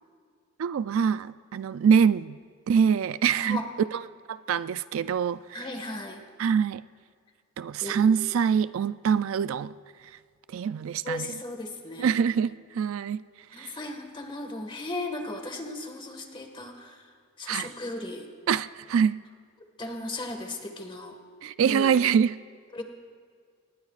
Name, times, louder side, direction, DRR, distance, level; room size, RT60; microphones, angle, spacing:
voice 1, 0.6-2.4 2.7-4.0 4.3-5.6 6.4-6.8 7.6-9.7 10.5-11.3 12.0-13.2 13.5-13.8 17.5-17.7 18.5-19.2 21.4-22.3, right 7 dB, 70° right, 0.3 m, -24 dB
voice 2, 5.5-6.2 7.8-8.0 11.0-12.2 13.5-18.3 19.8-21.2 21.6-22.0 22.7-22.8, left 2 dB, 25° left, 1.6 m, -36 dB
23.5 x 20.0 x 2.4 m
head